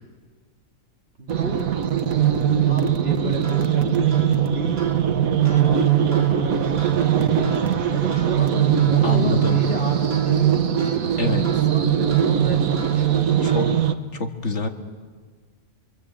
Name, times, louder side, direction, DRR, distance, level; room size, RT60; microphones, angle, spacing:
voice 1, 1.2-1.6 2.6-4.9 5.4-7.6 7.9-13.7, right 2 dB, 45° right, -2 dB, 2.8 m, -33 dB
sound 1, 1.3-13.9, right 9 dB, 90° right, 1.6 m, -20 dB
sound 2, 3.4-14.1, right 3 dB, 60° right, 3.6 m, -43 dB
voice 2, 9.0-9.6 11.2-11.5 13.4-13.7 14.1-14.7, left 3 dB, 60° left, 5 dB, 2.2 m, -25 dB
25.5 x 25.5 x 8.6 m, 1.5 s
omnidirectional pair, 1.4 m